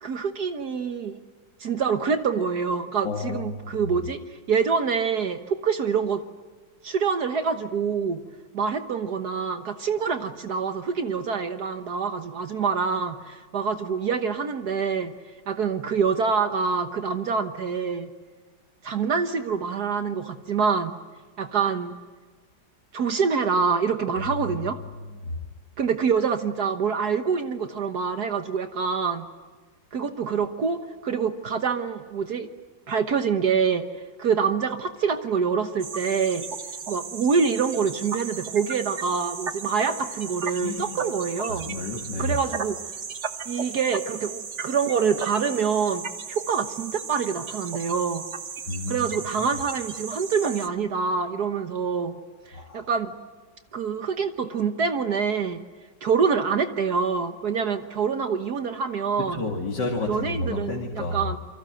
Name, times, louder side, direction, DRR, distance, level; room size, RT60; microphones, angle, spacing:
voice 1, 0.0-1.2 1.6-6.2 6.8-8.2 8.5-15.1 15.5-18.1 18.8-21.0 21.4-22.0 22.9-24.8 25.8-29.3 29.9-32.5 32.9-33.9 34.2-36.5 36.9-41.7 42.2-42.8 43.5-46.0 46.3-48.3 48.9-52.2 52.5-53.1 53.7-55.6 56.0-59.4 60.1-61.4, right 6 dB, 60° right, 8 dB, 1.7 m, -26 dB
voice 2, 3.0-3.6 25.2-25.3 40.6-41.0 41.6-42.4 48.7-49.1 52.5-52.8 59.3-61.2, left 2 dB, 70° left, 0 dB, 3.0 m, -30 dB
sound 1, 35.8-50.7, right 5 dB, 45° right, 1.4 m, -35 dB
28.0 x 24.5 x 7.8 m, 1.4 s
omnidirectional pair, 1.9 m